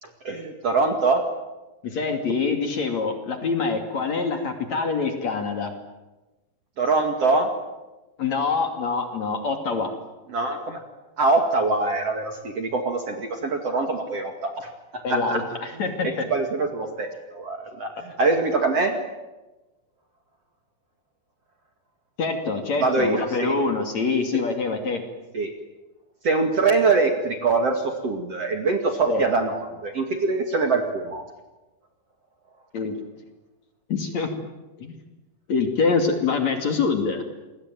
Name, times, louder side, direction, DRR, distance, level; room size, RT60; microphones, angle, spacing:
voice 1, 0.0-1.2 6.8-7.5 10.3-10.8 11.2-18.9 22.8-23.5 25.3-25.5 26.2-31.2, right 3 dB, 45° right, 4 dB, 2.7 m, -24 dB
voice 2, 1.8-5.7 8.2-9.9 15.0-16.3 22.2-25.0 29.1-29.2 32.7-32.9 33.9-34.3 34.8-34.9 35.5-37.2, left 4 dB, 45° left, 5 dB, 3.4 m, -25 dB
28.5 x 22.5 x 9.4 m, 1.1 s
omnidirectional pair, 5.0 m